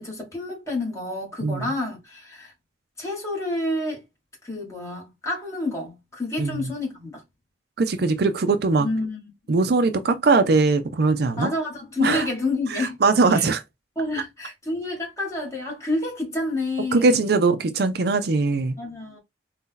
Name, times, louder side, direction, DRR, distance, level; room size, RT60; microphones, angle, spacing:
voice 1, 0.0-2.5 3.0-4.0 4.4-7.2 8.8-9.2 11.4-13.0 13.3-13.6 14.0-17.2 18.8-19.2, left 2 dB, 15° left, 2.1 m, -29 dB
voice 2, 6.4-6.7 7.8-8.9 9.5-11.5 12.0-12.3 12.7-13.6 16.9-18.8, right 3 dB, 60° right, 0.5 m, -21 dB
4.0 x 2.8 x 3.7 m
head